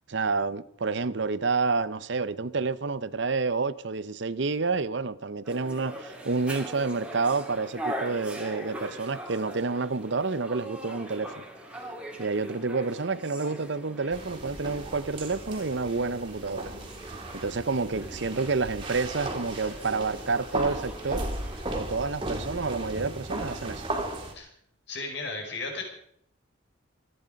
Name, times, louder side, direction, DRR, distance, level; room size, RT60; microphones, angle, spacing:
voice 1, 0.1-11.3 12.2-16.7 17.3-21.3 21.7-23.8, right 4 dB, 60° right, 0.7 m, -29 dB
sound 1, 5.4-21.7, right 1 dB, 5° right, 2.8 m, -42 dB
sound 2, 14.1-24.3, right 1 dB, 25° right, 3.0 m, -36 dB
voice 2, 24.9-25.8, left 3 dB, 55° left, 5.6 m, -34 dB
26.5 x 10.5 x 5.2 m
head